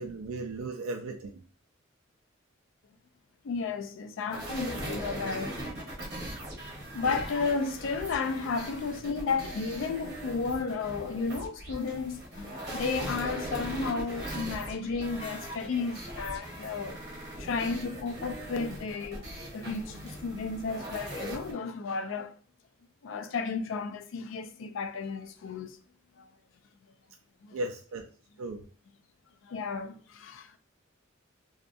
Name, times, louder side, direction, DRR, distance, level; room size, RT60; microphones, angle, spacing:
voice 1, 0.0-1.4 27.5-28.1 28.4-28.6, right 2 dB, 85° right, 0.3 m, -36 dB
voice 2, 3.4-5.5 6.9-17.0 17.4-19.3 19.5-22.3 23.0-25.8 26.2-26.3 27.4-27.6 29.4-30.6, left 4 dB, 65° left, 0.4 m, -33 dB
sound 1, 4.3-21.5, right 1 dB, 50° right, 1.0 m, -39 dB
2.7 x 2.5 x 2.3 m
head